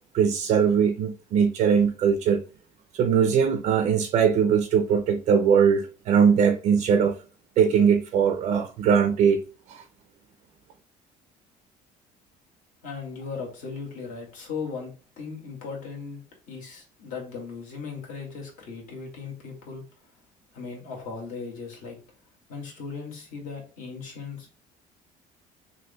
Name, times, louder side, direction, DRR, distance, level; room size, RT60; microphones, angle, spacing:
voice 1, 0.1-2.4 2.9-7.2 7.6-9.4 9.7-9.8, right 7 dB, 45° right, 0.4 m, -21 dB
voice 2, 12.8-16.2 16.5-19.8 20.5-22.0 22.5-24.5, left 5 dB, 60° left, 1.9 m, -37 dB
6.2 x 2.6 x 2.2 m
cardioid pair, 170°, 15 cm